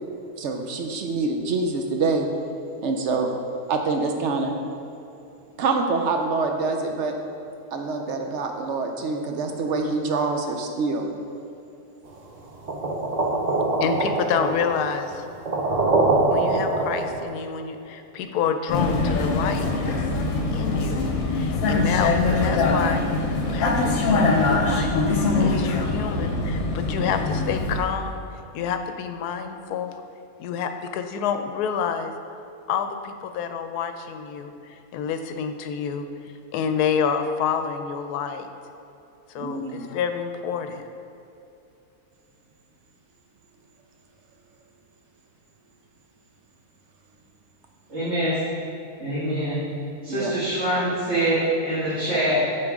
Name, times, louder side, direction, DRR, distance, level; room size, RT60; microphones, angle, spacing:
voice 1, 0.4-2.3 2.8-3.3 3.7-4.5 5.6-7.2 7.7-11.1 21.7-21.9 39.4-39.9 50.1-50.3, right 3 dB, 60° right, 4 dB, 0.8 m, -26 dB
sound 1, 12.7-17.2, right 2 dB, 80° right, 0.3 m, -23 dB
voice 2, 13.8-15.3 16.3-20.1 20.5-28.2 28.5-29.9 30.4-32.1 32.7-38.5 39.3-40.8, left 7 dB, 80° left, 7 dB, 1.1 m, -28 dB
Vehicle, 18.7-27.8, left 3 dB, 60° left, 1.0 m, -23 dB
voice 3, 47.9-48.4 49.0-49.6 50.0-52.4, right 1 dB, 45° right, -12 dB, 2.1 m, -24 dB
8.4 x 5.1 x 3.6 m, 2.8 s
omnidirectional pair, 1.7 m